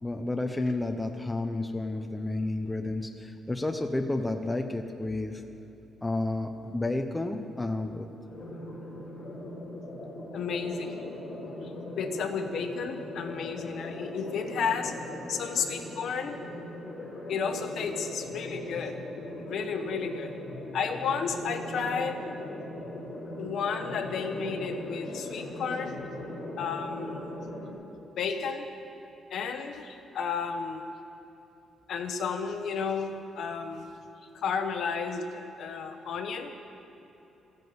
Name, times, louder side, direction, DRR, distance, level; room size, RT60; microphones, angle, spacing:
voice 1, 0.0-5.4 6.0-8.1, left 2 dB, 10° left, 5 dB, 0.7 m, -31 dB
sound 1, 8.2-27.7, left 1 dB, 35° left, 3.8 m, -39 dB
voice 2, 10.3-11.0 12.0-14.9 15.3-16.4 17.3-19.0 19.4-20.3 20.7-22.2 23.4-26.0 26.6-27.3 28.2-28.7 29.3-30.8 31.9-33.9 34.3-36.5, left 6 dB, 60° left, 6 dB, 1.2 m, -32 dB
15.0 x 10.5 x 7.9 m, 3.0 s
cardioid pair, 155°, 0 cm